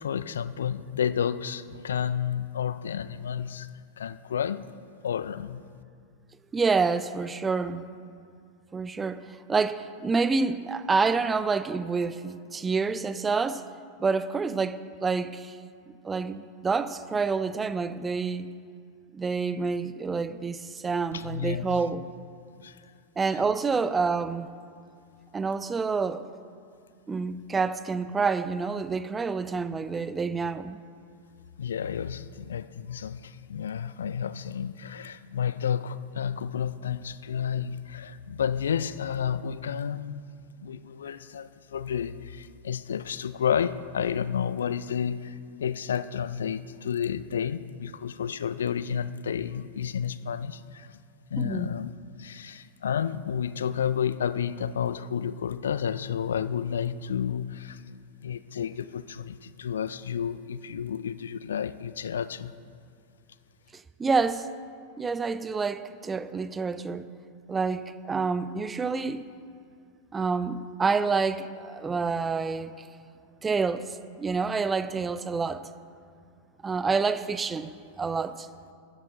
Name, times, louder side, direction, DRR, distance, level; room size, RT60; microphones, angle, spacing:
voice 1, 0.0-3.7 4.0-4.6 5.0-5.6 21.1-21.8 22.6-22.8 31.6-40.2 40.6-51.0 51.3-51.9 52.2-57.8 58.2-62.5, left 8 dB, 65° left, 0.3 m, -31 dB
voice 2, 6.5-7.9 8.7-13.6 14.0-15.6 16.0-18.5 19.1-22.1 23.2-24.5 25.3-26.3 27.1-30.8 51.4-51.8 63.7-64.5 65.0-67.1 67.5-69.2 70.1-72.9 73.4-75.7 76.6-77.7 78.0-78.5, right 4 dB, 15° right, 0.4 m, -28 dB
12.5 x 8.8 x 3.8 m
figure-of-eight pair, 90°, 0 cm